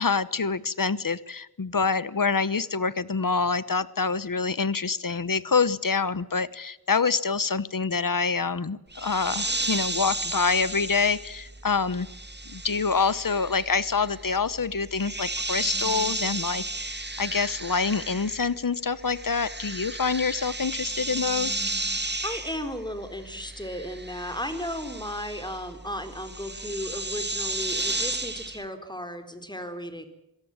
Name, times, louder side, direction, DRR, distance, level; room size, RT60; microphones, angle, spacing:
voice 1, 0.0-12.1 12.5-21.6, left 5 dB, 60° left, 17 dB, 1.1 m, -26 dB
sound 1, 8.9-18.6 18.9-28.6, right 2 dB, 25° right, 1.9 m, -33 dB
voice 2, 21.9-30.1, equal, 10° left, 8 dB, 4.1 m, -35 dB
26.0 x 17.5 x 8.9 m, 0.91 s
wide cardioid pair, 45°, 38 cm